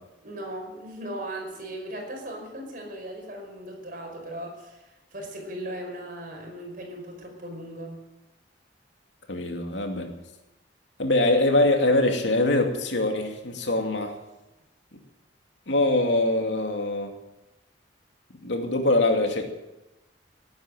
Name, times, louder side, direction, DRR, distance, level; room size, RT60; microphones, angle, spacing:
voice 1, 0.2-8.0, right 1 dB, 50° right, 1 dB, 5.2 m, -38 dB
voice 2, 9.3-10.1 11.0-14.2 15.7-17.2 18.4-19.4, left 2 dB, 80° left, 3 dB, 2.6 m, -23 dB
18.5 x 9.5 x 7.7 m, 0.98 s
head